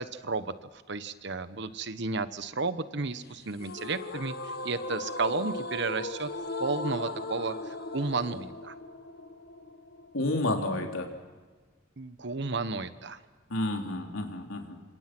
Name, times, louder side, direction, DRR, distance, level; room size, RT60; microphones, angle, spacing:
voice 1, 0.0-6.3 6.6-8.7 12.0-13.2, right 3 dB, 60° right, 12 dB, 1.1 m, -33 dB
sound 1, 3.6-10.6, left 2 dB, 50° left, 1.6 m, -38 dB
voice 2, 10.1-11.1 13.5-14.8, left 2 dB, 85° left, 3 dB, 3.4 m, -30 dB
27.5 x 25.5 x 6.1 m, 1.4 s
head